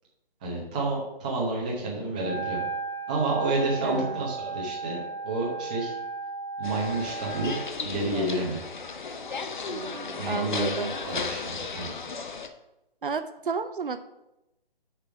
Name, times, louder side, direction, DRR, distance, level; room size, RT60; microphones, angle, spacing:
voice 1, 0.4-2.6 3.1-5.9 6.6-7.5 7.8-8.6 10.2-11.9, right 2 dB, 10° right, -4 dB, 0.9 m, -30 dB
Wind instrument woodwind instrument, 2.1-7.7, right 4 dB, 20° left, 2.0 m, -35 dB
voice 2, 3.8-4.3 9.7-10.9 13.0-14.0, right 5 dB, 60° right, 9 dB, 0.7 m, -32 dB
sound 1, 6.6-12.5, left 4 dB, 55° left, 0.9 m, -35 dB
6.9 x 5.9 x 5.9 m, 0.92 s
hypercardioid pair, 170°, 29 cm